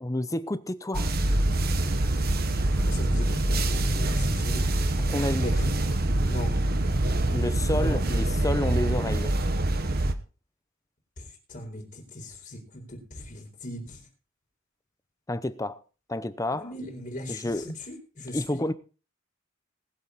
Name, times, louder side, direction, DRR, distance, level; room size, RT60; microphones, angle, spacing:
voice 1, 0.0-1.1 5.1-5.5 7.3-9.3 15.3-15.8 16.1-16.7 17.3-17.7 18.3-18.7, left 1 dB, 15° left, 0.7 m, -29 dB
sound 1, 0.9-10.1, right 1 dB, 45° right, 1.2 m, -25 dB
voice 2, 2.8-4.6 5.4-5.7 6.3-6.6 7.7-8.0 11.2-11.3 11.5-14.0 16.5-17.5 17.9-18.6, left 1 dB, 40° left, 4.3 m, -38 dB
20.0 x 7.6 x 4.1 m
head